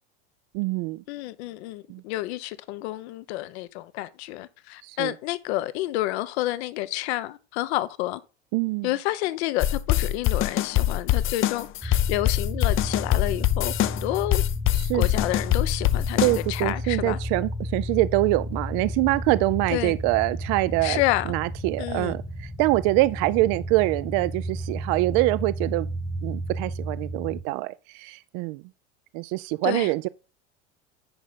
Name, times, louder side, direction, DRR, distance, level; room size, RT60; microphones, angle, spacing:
voice 1, 0.5-1.0 1.9-2.0 4.8-5.1 8.5-8.9 14.7-15.1 16.2-21.0 21.3-25.9 26.2-28.6 29.1-30.1, right 20 dB, 55° right, 0.6 m, -24 dB
voice 2, 1.1-8.2 8.8-14.4 14.9-17.2 19.7-19.9 20.8-21.3 21.8-22.1 29.6-29.9, left 16 dB, 70° left, 0.9 m, -29 dB
sound 1, 9.6-16.7, left 13 dB, 35° left, 0.6 m, -24 dB
sound 2, 11.8-27.4, equal, ahead, 1.0 m, -33 dB
10.0 x 5.0 x 4.1 m
hypercardioid pair, 90°, 34 cm